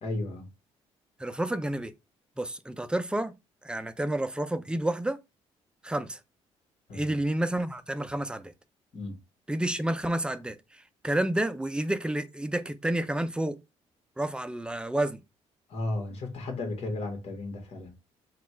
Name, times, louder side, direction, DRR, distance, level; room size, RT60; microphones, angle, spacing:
voice 1, 0.0-0.5 6.9-7.1 8.9-9.2 15.7-17.9, left 2 dB, 60° left, 1.6 m, -34 dB
voice 2, 1.2-1.9 2.4-3.3 3.6-5.2 5.8-6.2 6.9-8.5 9.5-13.6 14.2-15.2, right 1 dB, 10° right, 0.5 m, -30 dB
4.2 x 2.4 x 4.3 m
cardioid pair, 90°, 12 cm